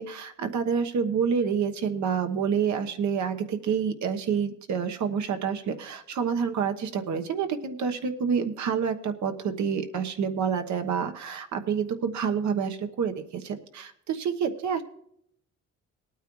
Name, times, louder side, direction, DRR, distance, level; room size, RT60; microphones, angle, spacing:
voice 1, 0.0-14.8, right 6 dB, 70° right, 7 dB, 1.2 m, -28 dB
19.5 x 9.1 x 3.1 m, 0.72 s
cardioid pair, 90°, 30 cm